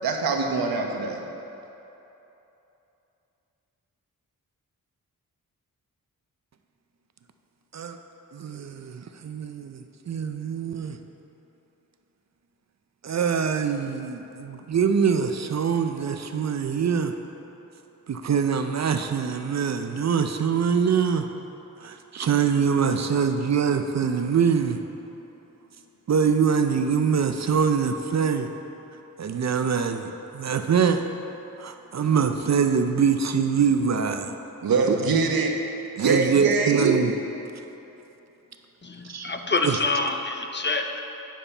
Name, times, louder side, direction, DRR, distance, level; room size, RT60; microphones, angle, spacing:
voice 1, 0.0-1.2 34.6-35.5 36.0-37.0, right 4 dB, 80° right, 0.9 m, -23 dB
voice 2, 8.3-11.0 13.0-17.1 18.1-21.3 21.8-24.8 26.1-28.5 29.2-31.0 31.6-34.3 34.9-35.0 36.0-37.1 39.1-39.3 39.6-39.8, right 6 dB, 50° right, 0.5 m, -24 dB
voice 3, 38.8-41.0, left 3 dB, 30° left, 0.6 m, -27 dB
9.2 x 6.9 x 4.3 m
wide cardioid pair, 95°, 35 cm